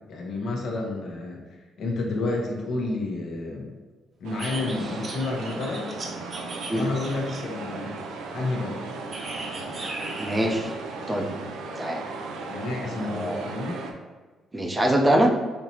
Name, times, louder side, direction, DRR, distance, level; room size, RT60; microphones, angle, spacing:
voice 1, 0.1-3.7 4.2-5.9 6.7-8.0 8.3-8.8 12.5-13.8, left 2 dB, 70° left, -1 dB, 1.0 m, -30 dB
sound 1, 4.2-13.9, right 3 dB, 90° right, 0.5 m, -36 dB
sound 2, 4.4-7.6 9.1-10.6, right 2 dB, 50° right, 0.9 m, -38 dB
voice 2, 10.2-10.7 11.1-11.3 11.8-12.0 13.1-13.5 14.5-15.3, right 1 dB, 20° right, 1 dB, 0.6 m, -23 dB
5.7 x 2.8 x 2.9 m, 1.3 s
cardioid pair, 90°, 0 cm